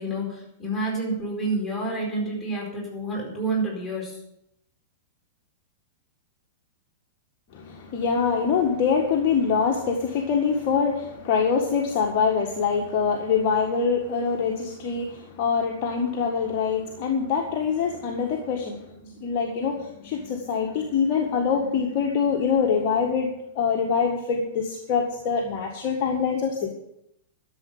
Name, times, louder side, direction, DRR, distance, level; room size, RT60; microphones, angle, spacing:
voice 1, 0.0-4.2, right 2 dB, 5° left, -4 dB, 4.5 m, -29 dB
voice 2, 7.5-26.7, left 6 dB, 40° left, 1 dB, 1.8 m, -24 dB
12.5 x 7.4 x 8.4 m, 0.80 s
figure-of-eight pair, 100°, 0 cm